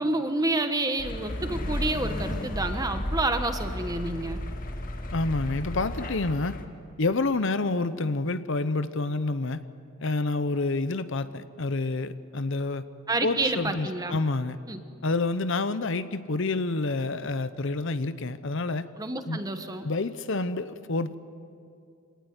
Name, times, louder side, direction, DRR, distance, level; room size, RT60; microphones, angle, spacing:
voice 1, 0.0-4.4 13.1-14.2 14.7-14.8 19.0-19.9, right 2 dB, 15° right, 8 dB, 1.3 m, -29 dB
sound 1, 1.0-6.6, left 1 dB, 40° left, 1.7 m, -33 dB
voice 2, 5.1-6.6 7.0-9.6 10.0-12.8 13.2-14.6 15.0-18.9 19.3-19.4 19.8-21.1, left 3 dB, 60° left, 13 dB, 0.8 m, -28 dB
26.5 x 18.5 x 9.7 m, 2.4 s
head